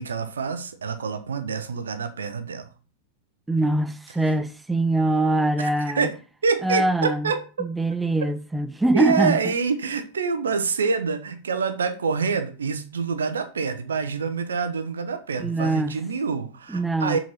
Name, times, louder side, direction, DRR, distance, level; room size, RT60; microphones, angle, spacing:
voice 1, 0.0-2.7 5.6-5.7 5.9-6.2 6.4-7.4 8.9-17.2, right 5 dB, 70° right, 0.9 m, -26 dB
voice 2, 3.5-6.1 6.6-7.3 7.6-9.4 15.4-16.0 16.7-17.2, right 2 dB, 5° right, 0.5 m, -23 dB
7.5 x 4.4 x 4.1 m
figure-of-eight pair, 90°, 0 cm